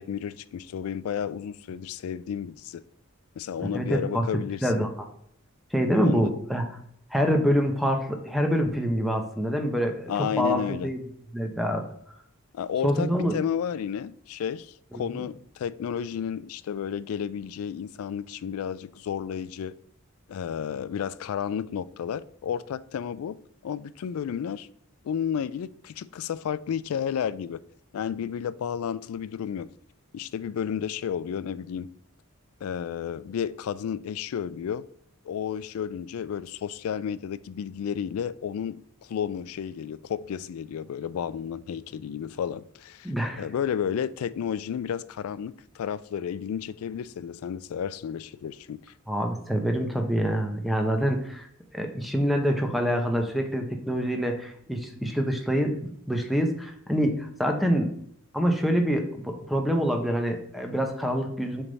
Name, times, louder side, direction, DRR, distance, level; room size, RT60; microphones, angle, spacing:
voice 1, 0.0-2.8 3.4-4.8 6.0-6.3 10.1-10.9 12.5-19.8 20.3-23.4 23.6-24.7 25.0-27.6 27.9-29.7 30.1-31.9 32.6-34.8 35.3-48.8, left 8 dB, 85° left, 0.3 m, -32 dB
voice 2, 3.6-4.2 4.6-5.1 5.7-6.6 7.1-10.1 10.4-11.0 11.3-11.8 12.8-13.3 14.9-15.2 43.0-43.4 49.1-51.5 51.7-57.9 58.3-61.6, equal, ahead, 0.8 m, -26 dB
7.0 x 3.5 x 4.0 m
head